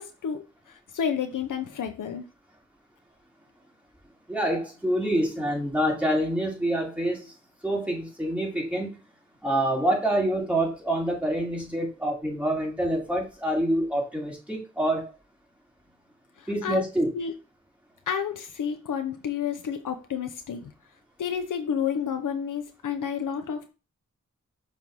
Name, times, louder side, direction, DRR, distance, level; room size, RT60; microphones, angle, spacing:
voice 1, 0.0-2.3 16.4-16.8 17.1-17.3 18.1-20.7 21.2-23.7, left 7 dB, 80° left, 6 dB, 0.7 m, -30 dB
voice 2, 4.3-7.3 7.6-8.9 9.4-15.1 16.5-17.1, right 1 dB, 5° right, -3 dB, 2.9 m, -26 dB
6.0 x 3.1 x 5.3 m, 0.30 s
cardioid pair, 65°, 31 cm